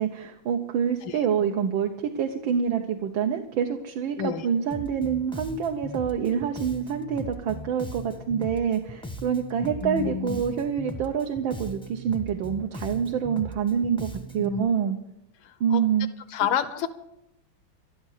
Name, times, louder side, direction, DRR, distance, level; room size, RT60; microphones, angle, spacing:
voice 1, 0.0-14.1 14.3-15.0 15.6-16.1, right 7 dB, 80° right, 4 dB, 1.7 m, -26 dB
voice 2, 4.2-4.5 9.8-10.4 14.4-14.6 15.4-15.8 16.3-16.9, left 8 dB, 85° left, 9 dB, 1.7 m, -29 dB
Bass guitar, 4.7-14.6, equal, 5° left, 0.5 m, -39 dB
12.5 x 12.5 x 6.5 m, 0.83 s
omnidirectional pair, 2.2 m